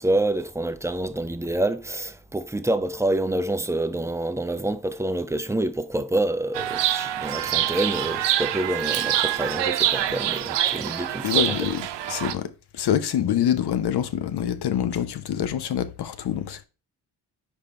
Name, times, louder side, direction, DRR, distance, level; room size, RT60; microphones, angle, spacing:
voice 1, 0.0-11.7, right 1 dB, 5° right, 0.5 m, -27 dB
Chirp tweet, 6.5-12.3, right 12 dB, 70° right, 0.7 m, -25 dB
voice 2, 11.2-11.8 12.1-16.6, left 9 dB, 60° left, 0.8 m, -25 dB
5.3 x 5.1 x 4.2 m
cardioid pair, 75°, 44 cm